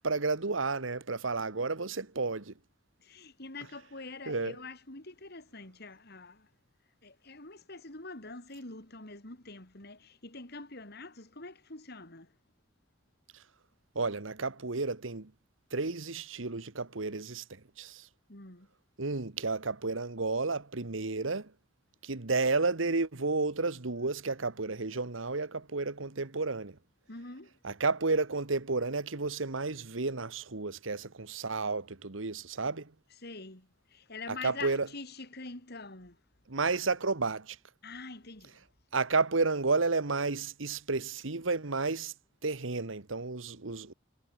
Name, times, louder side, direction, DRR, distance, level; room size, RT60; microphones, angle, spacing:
voice 1, 0.0-2.5 4.3-4.5 13.9-15.3 15.7-18.1 19.0-21.5 22.0-26.8 27.6-32.9 34.3-34.9 36.5-37.6 38.9-42.1 42.4-43.9, right 3 dB, 80° right, 1.5 m, -31 dB
voice 2, 3.0-6.5 7.0-12.3 18.3-18.7 27.1-27.5 33.2-36.2 37.8-38.7, left 3 dB, 55° left, 4.1 m, -45 dB
head